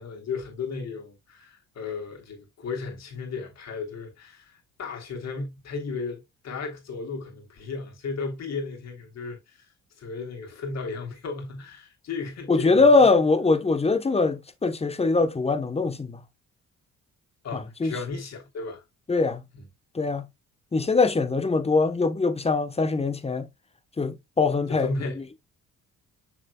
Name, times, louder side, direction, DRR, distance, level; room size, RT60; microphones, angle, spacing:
voice 1, 0.0-9.6 10.0-13.1 17.4-18.8 19.5-19.7 24.7-25.2, left 4 dB, 60° left, 3.3 m, -35 dB
voice 2, 12.5-16.2 17.5-17.9 19.1-19.4 19.9-20.3 20.7-23.5 24.0-24.9 25.2-25.3, left 3 dB, 20° left, 1.1 m, -22 dB
7.1 x 6.4 x 2.3 m
cardioid pair, 90°, 30 cm